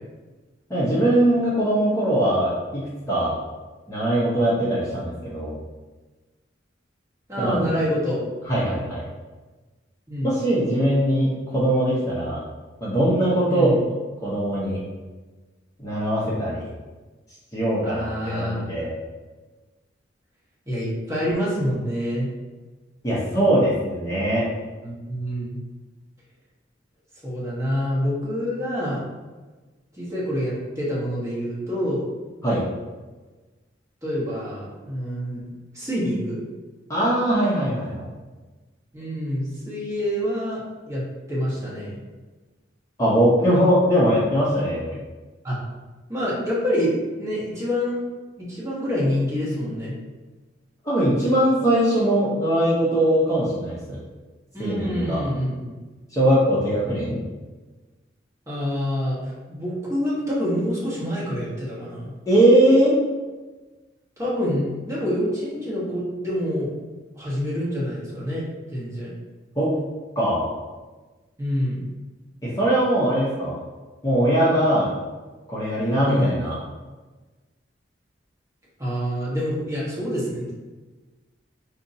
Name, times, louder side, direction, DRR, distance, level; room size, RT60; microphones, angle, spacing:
voice 1, 0.7-3.3 3.9-5.6 7.4-7.7 8.5-9.0 10.2-12.4 12.8-13.8 14.2-14.8 15.8-16.6 17.5-18.9 23.0-24.5 32.4-32.6 36.9-38.1 43.0-44.9 50.8-54.0 54.6-55.2 56.1-57.2 62.3-63.0 69.6-69.7 70.2-70.5 72.4-73.6 74.0-74.9 75.5-76.6, right 1 dB, 20° left, -8 dB, 0.8 m, -21 dB
voice 2, 7.3-8.2 10.1-10.3 13.5-13.8 17.8-18.7 20.7-22.3 24.8-25.6 27.2-29.0 29.9-32.0 34.0-35.4 35.7-36.4 38.9-40.6 40.9-41.0 41.3-42.0 45.4-45.6 46.1-46.9 47.2-48.0 48.4-49.9 54.5-55.7 58.5-62.1 64.2-66.7 67.1-68.4 68.7-69.1 71.4-71.8 76.0-76.3 78.8-80.5, equal, 15° right, -8 dB, 1.2 m, -26 dB
5.2 x 2.8 x 2.7 m, 1.3 s
head